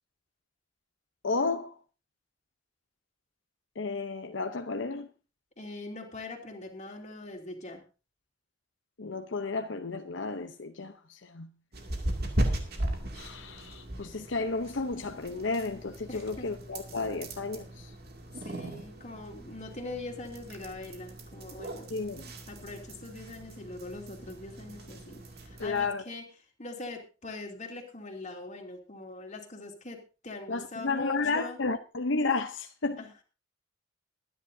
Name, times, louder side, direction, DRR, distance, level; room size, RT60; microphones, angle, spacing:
voice 1, 1.2-1.7 3.8-5.1 9.0-11.5 13.1-17.9 21.9-22.2 25.6-26.0 30.5-33.0, left 3 dB, 75° left, 0.8 m, -32 dB
voice 2, 5.6-7.8 16.1-16.5 18.4-21.9 22.2-26.2 26.6-31.6 33.0-33.1, left 2 dB, 40° left, 2.8 m, -42 dB
sound 1, 11.7-25.9, right 1 dB, 55° right, 2.5 m, -38 dB
22.0 x 10.5 x 2.7 m
head